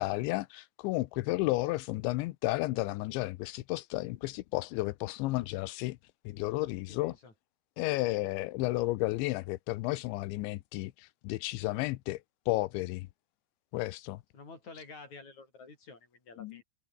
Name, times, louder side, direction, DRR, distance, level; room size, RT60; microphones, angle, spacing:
voice 1, 0.0-6.0 6.3-7.2 7.8-13.1 13.7-14.2 16.4-16.6, left 19 dB, 85° left, 3.2 m, -32 dB
voice 2, 6.9-7.3 14.3-16.6, left 4 dB, 40° left, 8.1 m, -50 dB
omnidirectional pair, 5.1 m